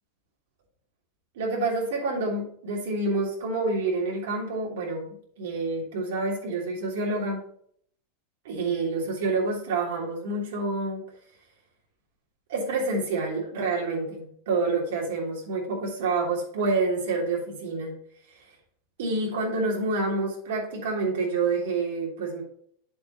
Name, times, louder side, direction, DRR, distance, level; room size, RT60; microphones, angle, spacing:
voice 1, 1.3-7.4 8.4-11.0 12.5-18.0 19.0-22.4, right 3 dB, 75° right, -2 dB, 2.9 m, -28 dB
8.6 x 7.0 x 2.8 m, 0.62 s
supercardioid pair, 180°, 0 cm